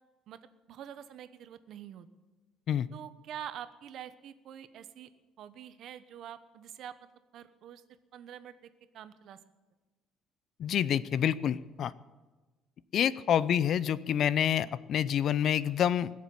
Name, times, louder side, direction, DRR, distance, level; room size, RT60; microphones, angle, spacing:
voice 1, 0.7-2.1 2.9-5.1 5.4-6.9 7.3-7.8 8.1-9.4 13.5-13.7, right 10 dB, 60° right, 12 dB, 1.0 m, -46 dB
voice 2, 10.6-11.9 12.9-16.1, left 9 dB, 50° left, 18 dB, 0.5 m, -27 dB
20.0 x 7.3 x 9.2 m, 1.2 s
cardioid pair, 130°, 0 cm